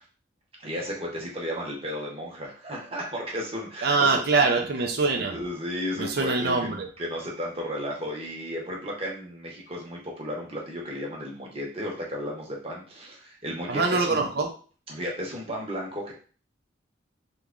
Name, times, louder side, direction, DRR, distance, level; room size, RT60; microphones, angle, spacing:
voice 1, 0.6-4.2 4.8-4.9 5.3-6.7 7.0-14.3 14.9-16.1, equal, 30° right, -2 dB, 0.9 m, -34 dB
voice 2, 3.8-5.3 6.0-6.9 13.7-14.5, right 3 dB, 55° right, 4 dB, 0.5 m, -24 dB
3.0 x 2.3 x 3.6 m, 0.40 s
head